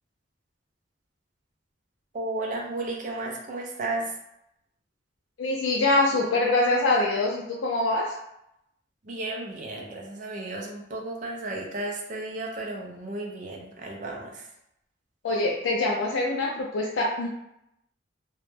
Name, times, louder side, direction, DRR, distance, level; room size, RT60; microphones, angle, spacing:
voice 1, 2.1-4.1 9.0-14.5, right 2 dB, 40° right, 0 dB, 0.4 m, -33 dB
voice 2, 5.4-8.2 15.2-17.3, left 2 dB, 85° left, -3 dB, 0.4 m, -24 dB
2.1 x 2.0 x 3.1 m, 0.82 s
head